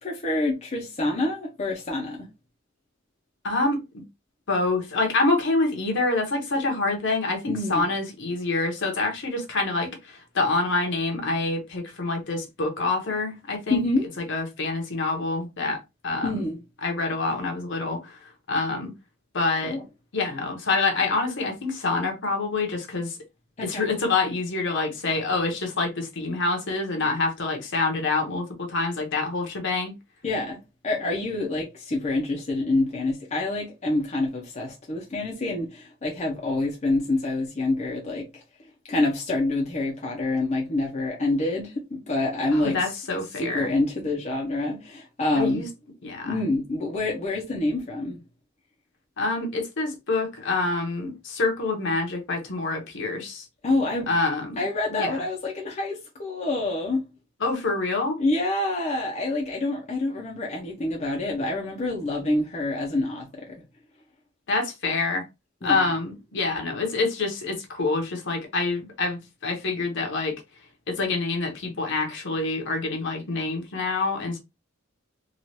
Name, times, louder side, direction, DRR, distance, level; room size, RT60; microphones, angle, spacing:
voice 1, 0.0-2.3 7.5-7.9 13.7-14.1 16.2-16.6 19.6-19.8 23.6-23.8 30.2-30.6 30.8-38.4 38.9-42.8 43.4-45.6 46.3-48.2 53.6-54.1 54.6-57.1 58.2-63.6 65.6-65.8, left 2 dB, 35° left, 0.6 m, -27 dB
voice 2, 3.4-4.0 4.5-13.8 14.2-16.5 16.8-18.9 19.3-19.8 20.1-23.2 23.6-29.9 42.5-43.7 45.4-45.7 46.0-46.4 49.2-53.5 54.1-55.2 57.4-58.2 64.5-65.2 65.6-70.4 70.9-74.4, left 3 dB, 60° left, 0.9 m, -26 dB
3.0 x 2.4 x 2.7 m
head